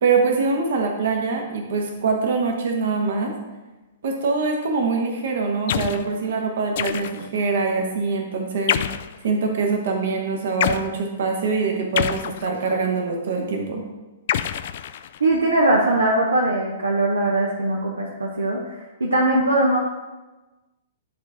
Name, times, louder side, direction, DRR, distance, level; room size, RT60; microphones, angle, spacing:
voice 1, 0.0-3.3 4.0-8.8 9.2-13.8, right 4 dB, 55° right, 2 dB, 1.3 m, -24 dB
Space Laser, 5.7-6.1 6.8-7.4 8.7-9.2 10.6-10.9 12.0-12.8 14.3-15.4, left 10 dB, 50° left, 0.3 m, -26 dB
voice 2, 15.2-19.8, right 2 dB, 75° right, -1 dB, 0.9 m, -21 dB
10.0 x 4.4 x 3.7 m, 1.1 s
figure-of-eight pair, 110°, 0 cm